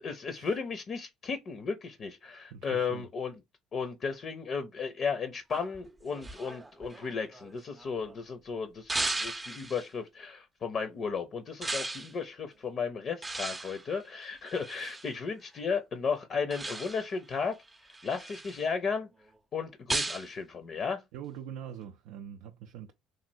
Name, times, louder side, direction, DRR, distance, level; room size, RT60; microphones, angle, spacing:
voice 1, 0.0-3.3 3.7-17.6 18.0-19.1 19.5-21.0, left 5 dB, 50° left, 0.5 m, -34 dB
voice 2, 2.5-3.1 14.7-15.3 21.1-22.9, right 9 dB, 80° right, 0.3 m, -44 dB
sound 1, 5.5-8.1 8.9-9.9 11.6-12.1 13.2-15.1 16.5-17.2 17.7-18.6 19.9-20.3, right 2 dB, 15° right, 0.5 m, -36 dB
3.1 x 2.4 x 2.6 m
supercardioid pair, 85°, 0 cm